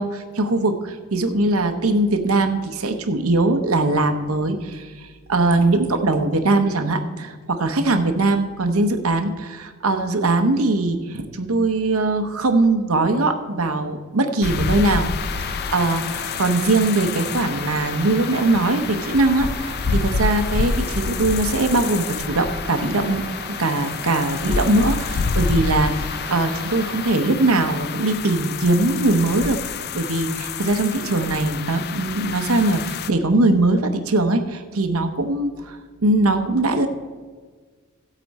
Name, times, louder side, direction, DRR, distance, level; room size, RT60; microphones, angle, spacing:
voice 1, 0.0-15.1 15.4-36.9, right 2 dB, 90° right, 6 dB, 0.9 m, -21 dB
sound 1, 14.4-33.1, left 5 dB, 50° left, 0.4 m, -28 dB
Truck, 15.2-27.2, right 3 dB, 25° right, 0.6 m, -38 dB
15.0 x 8.2 x 4.2 m, 1.5 s
head